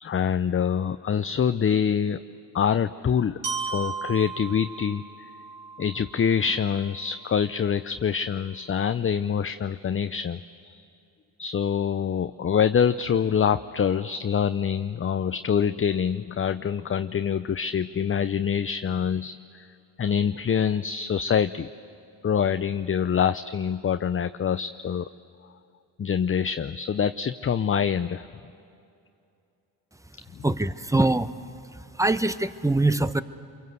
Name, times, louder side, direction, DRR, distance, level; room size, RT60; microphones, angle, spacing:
voice 1, 0.0-2.2 2.5-5.0 5.8-10.8 11.4-19.7 20.0-21.7 22.2-25.0 26.0-28.3 30.4-30.5, left 7 dB, 30° left, 11 dB, 0.6 m, -25 dB
Glockenspiel, 3.4-7.4, right 5 dB, 70° right, 3.9 m, -36 dB
voice 2, 30.4-31.3 31.7-33.2, right 2 dB, 5° right, 13 dB, 1.0 m, -23 dB
26.5 x 23.5 x 8.0 m, 2.6 s
supercardioid pair, 50°, 43 cm